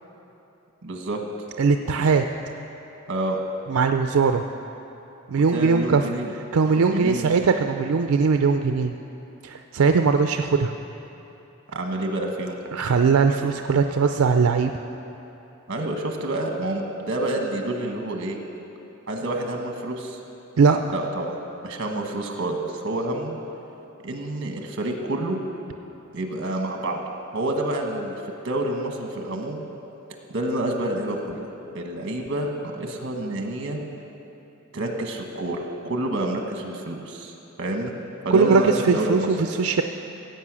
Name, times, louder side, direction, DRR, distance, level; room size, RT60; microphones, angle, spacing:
voice 1, 0.8-1.2 3.1-3.4 5.5-6.3 6.6-7.4 11.7-12.6 15.7-18.4 19.1-20.2 20.9-23.3 24.0-25.4 26.1-27.0 27.3-28.2 28.4-29.6 30.3-31.5 31.7-33.8 34.7-37.3 37.6-38.0 38.2-39.3, right 1 dB, 60° right, 3 dB, 1.5 m, -28 dB
voice 2, 1.6-2.3 3.7-4.4 5.3-6.0 6.5-8.9 9.4-10.7 12.7-14.7 20.6-20.8 38.3-39.8, right 5 dB, 90° right, 6 dB, 0.4 m, -20 dB
15.5 x 8.1 x 6.2 m, 3.0 s
head